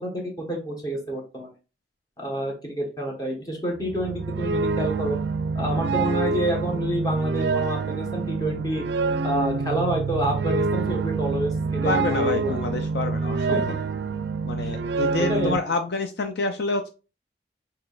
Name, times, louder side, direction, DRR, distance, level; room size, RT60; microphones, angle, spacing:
voice 1, 0.0-1.5 2.2-5.2 5.5-8.8 9.2-12.6 13.5-13.6 14.6-14.7 15.2-15.5, right 1 dB, 20° left, 0 dB, 1.1 m, -28 dB
sound 1, 3.8-15.6, right 4 dB, 80° right, 0.4 m, -26 dB
voice 2, 11.8-13.8 14.4-16.9, left 3 dB, 70° left, 6 dB, 0.5 m, -28 dB
5.9 x 2.9 x 2.4 m, 0.32 s
head